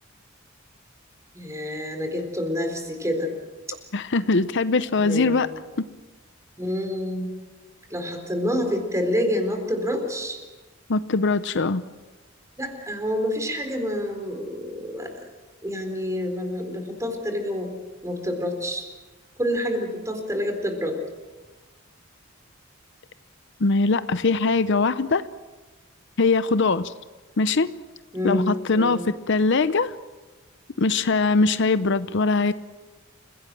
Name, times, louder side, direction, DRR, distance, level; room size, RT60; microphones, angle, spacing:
voice 1, 1.3-3.3 4.9-5.6 6.6-7.4 7.9-10.4 12.6-15.1 15.6-17.7 18.0-18.9 19.4-21.0 28.1-29.0, equal, 15° right, 5 dB, 4.1 m, -28 dB
voice 2, 3.9-5.5 10.9-11.8 23.6-25.2 26.2-26.9 27.4-27.7 28.2-29.9 30.8-32.5, left 3 dB, 65° left, 13 dB, 0.7 m, -21 dB
29.0 x 17.0 x 7.7 m, 1.3 s
head